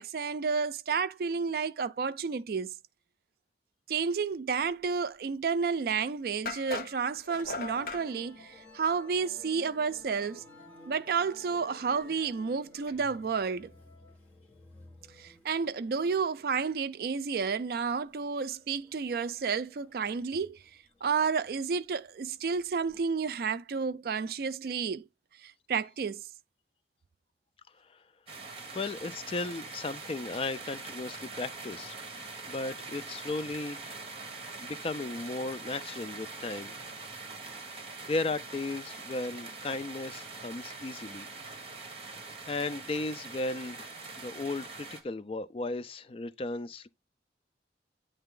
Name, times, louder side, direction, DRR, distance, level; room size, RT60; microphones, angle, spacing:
voice 1, 0.0-2.7 3.9-10.4 10.9-13.7 15.2-20.6 21.0-25.1 25.4-26.3, right 5 dB, 55° right, 0.4 m, -31 dB
sound 1, 5.6-5.7 6.5-8.1, left 3 dB, 55° left, 0.9 m, -38 dB
Musical instrument, 7.4-22.9, left 3 dB, 10° left, 1.6 m, -55 dB
sound 2, 28.3-45.0, right 3 dB, 35° right, 1.2 m, -43 dB
voice 2, 28.7-31.9 32.5-34.1 34.6-36.7 38.1-41.3 41.7-42.0 42.5-46.9, left 2 dB, 30° left, 0.4 m, -35 dB
8.9 x 3.3 x 3.7 m
head